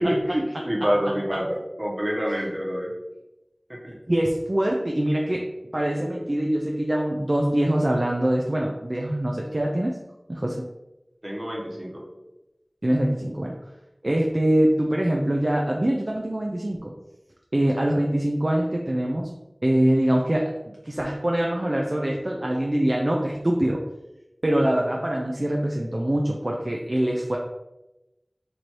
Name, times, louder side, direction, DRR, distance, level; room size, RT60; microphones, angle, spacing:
voice 1, 0.0-2.9 3.7-4.0 11.2-12.0, equal, 40° right, -3 dB, 1.1 m, -27 dB
voice 2, 0.5-1.4 2.3-2.4 4.1-5.5 5.7-10.0 10.3-10.6 12.8-13.6 14.0-16.9 17.5-19.3 19.6-23.8 24.4-27.4, right 1 dB, 55° right, 0 dB, 0.4 m, -24 dB
3.1 x 2.7 x 4.4 m, 0.97 s
wide cardioid pair, 40°, 0 cm